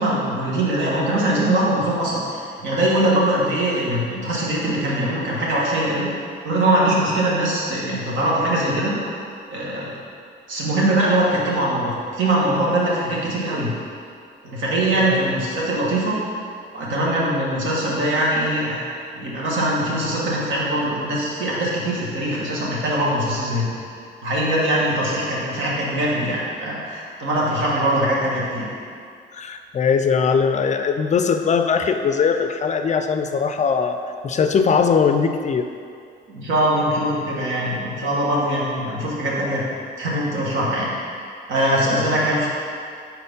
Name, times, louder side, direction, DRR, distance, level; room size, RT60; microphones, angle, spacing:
voice 1, 0.0-6.1 6.4-8.9 9.5-10.0 10.5-13.7 14.4-16.2 16.7-23.7 24.2-28.7 36.3-39.6 40.0-42.5, right 1 dB, 80° right, -5 dB, 1.5 m, -22 dB
voice 2, 29.3-34.0 34.2-35.7, left 6 dB, 35° left, 7 dB, 0.4 m, -20 dB
4.3 x 4.2 x 5.3 m, 2.3 s
cardioid pair, 90°, 20 cm